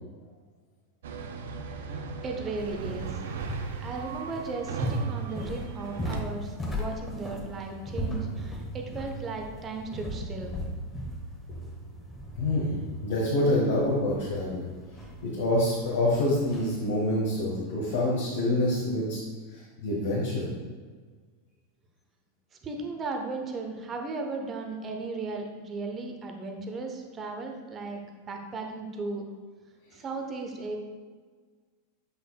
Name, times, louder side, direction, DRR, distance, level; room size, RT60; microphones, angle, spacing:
sound 1, 1.0-6.2, right 5 dB, 60° right, 0.5 m, -38 dB
voice 1, 1.8-3.2 3.8-10.5 22.6-28.0 28.3-29.2 29.9-30.8, right 3 dB, 25° right, 3 dB, 0.9 m, -36 dB
sound 2, 2.6-16.9, right 1 dB, 10° left, 1.4 m, -37 dB
voice 2, 12.4-12.8 13.0-14.6 15.2-19.2 19.5-20.5, left 1 dB, 60° left, -5 dB, 1.3 m, -26 dB
8.3 x 5.4 x 2.3 m, 1.5 s
figure-of-eight pair, 85°, 0 cm